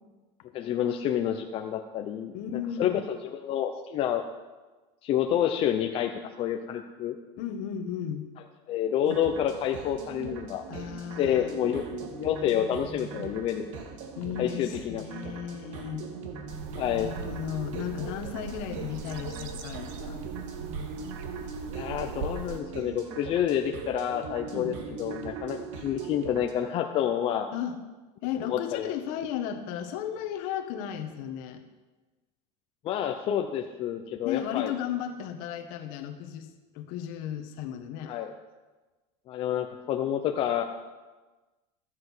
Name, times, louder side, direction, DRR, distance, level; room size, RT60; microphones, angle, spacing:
voice 1, 0.5-2.3 2.8-2.9 3.3-4.2 5.0-6.1 6.4-7.2 8.7-10.6 11.2-13.6 14.4-15.0 16.8-17.1 21.7-27.5 28.5-28.9 32.8-34.7 38.1-38.3 39.3-40.6, left 10 dB, 35° left, 4 dB, 0.7 m, -28 dB
voice 2, 2.3-3.0 7.4-8.3 10.7-11.6 14.2-16.1 17.0-20.2 24.5-24.7 27.5-27.8 28.2-31.6 34.2-38.1, left 9 dB, 60° left, 7 dB, 1.3 m, -35 dB
sound 1, 9.0-26.5, right 5 dB, 85° right, 2.0 m, -40 dB
sound 2, 16.5-22.6, right 5 dB, 55° right, 1.1 m, -40 dB
12.5 x 7.6 x 6.2 m, 1.2 s
supercardioid pair, 150°, 16 cm